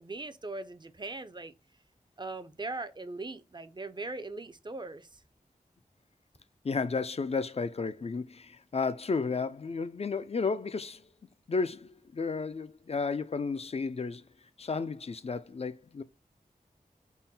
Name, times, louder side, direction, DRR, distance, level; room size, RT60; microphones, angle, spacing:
voice 1, 0.0-1.5 2.2-5.2, right 2 dB, 30° right, 0.4 m, -40 dB
voice 2, 6.6-11.0 11.5-14.3 14.6-16.0, left 4 dB, 40° left, 0.4 m, -33 dB
3.7 x 2.0 x 4.1 m
cardioid pair, 40°, 15 cm